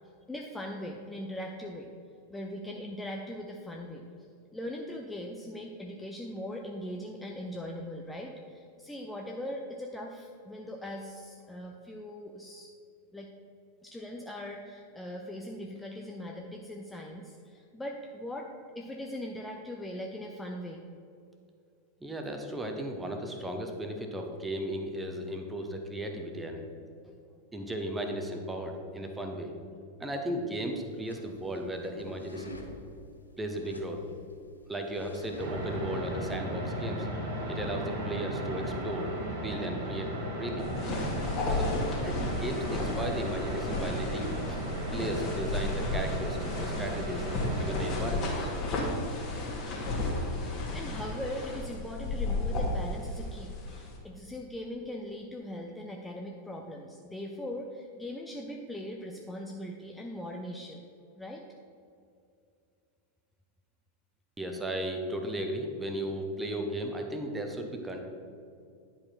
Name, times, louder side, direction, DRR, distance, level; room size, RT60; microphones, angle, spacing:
voice 1, 0.3-1.9 2.3-4.0 4.5-12.7 13.1-13.3 13.8-20.8 27.0-27.1 44.5-44.6 49.6-60.9 61.1-61.4, left 1 dB, 10° left, 1 dB, 0.5 m, -40 dB
voice 2, 22.0-27.1 27.5-29.5 30.0-32.7 33.4-34.0 34.7-37.1 37.5-40.1 40.4-40.7 41.5-41.8 42.0-44.3 44.9-47.3 47.6-48.5 64.4-68.0, right 1 dB, 10° right, 4 dB, 0.9 m, -35 dB
sound 1, 30.7-35.8, left 1 dB, 80° left, 0.7 m, -50 dB
sound 2, 35.4-48.0, right 1 dB, 55° right, 1.4 m, -36 dB
sound 3, 40.6-54.0, left 2 dB, 35° left, 2.0 m, -33 dB
10.5 x 4.8 x 4.4 m, 2.5 s
figure-of-eight pair, 90°, 0 cm